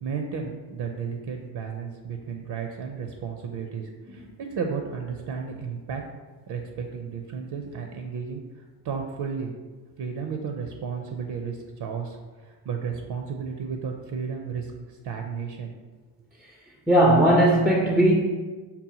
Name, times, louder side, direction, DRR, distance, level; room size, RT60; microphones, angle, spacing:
voice 1, 0.0-6.0 6.5-8.4 8.8-9.5 10.0-12.2 12.4-15.7, right 6 dB, 55° right, 3 dB, 0.5 m, -33 dB
voice 2, 16.9-18.1, right 1 dB, ahead, -1 dB, 0.3 m, -18 dB
5.4 x 2.2 x 2.8 m, 1.3 s
cardioid pair, 85°, 49 cm